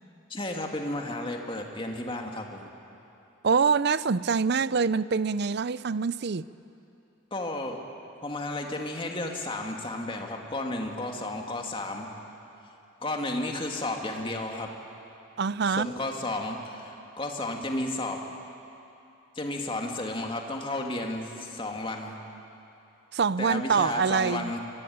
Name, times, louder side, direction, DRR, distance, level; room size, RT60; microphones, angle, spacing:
voice 1, 0.3-2.7 7.3-7.8 8.2-12.1 13.0-14.7 15.6-18.2 19.4-22.2 23.4-24.6, left 2 dB, 25° left, 2.5 m, -33 dB
voice 2, 3.4-6.4 15.4-15.9 23.1-24.5, right 5 dB, 55° right, 0.5 m, -25 dB
26.0 x 22.5 x 9.5 m
head